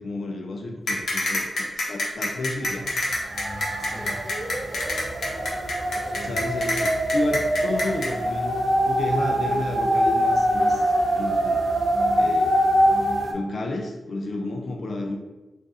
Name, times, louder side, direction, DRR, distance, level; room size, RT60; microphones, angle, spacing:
voice 1, 0.0-2.9 6.2-8.6 8.9-11.7 12.1-12.5 13.3-15.2, left 2 dB, 60° left, 2 dB, 0.3 m, -31 dB
sound 1, 0.9-8.1, left 2 dB, 85° left, 0.7 m, -26 dB
sound 2, 2.7-2.8 3.1-13.3, equal, 75° right, 0.5 m, -24 dB
voice 2, 3.3-4.2 5.9-6.4 11.9-12.3 12.9-13.2, left 2 dB, 5° left, -3 dB, 0.7 m, -38 dB
2.5 x 2.3 x 3.9 m, 1.1 s
wide cardioid pair, 125°, 0 cm